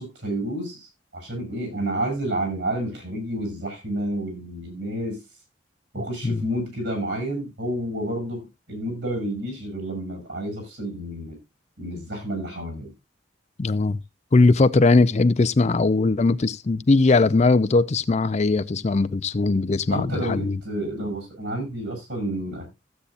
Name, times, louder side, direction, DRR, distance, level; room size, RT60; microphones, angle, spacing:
voice 1, 0.0-5.2 5.9-11.4 11.8-12.9 19.9-22.7, right 1 dB, 70° right, 7.0 m, -30 dB
voice 2, 13.6-14.0 14.3-20.6, left 3 dB, 35° left, 0.4 m, -20 dB
15.5 x 8.4 x 2.5 m
head